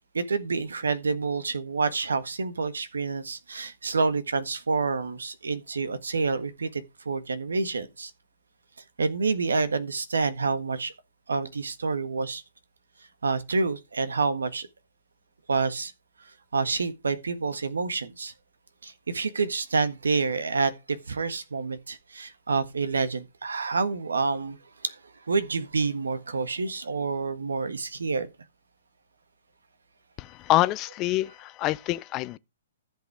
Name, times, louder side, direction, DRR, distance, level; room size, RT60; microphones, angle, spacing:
voice 1, 0.1-8.1 9.0-10.9 11.3-12.4 13.2-14.7 15.5-15.9 16.2-18.3 18.8-28.3, right 4 dB, 85° right, 1.5 m, -28 dB
voice 2, 30.2-32.4, left 17 dB, 30° left, 0.6 m, -26 dB
14.5 x 5.7 x 4.9 m
hypercardioid pair, 135°, 0 cm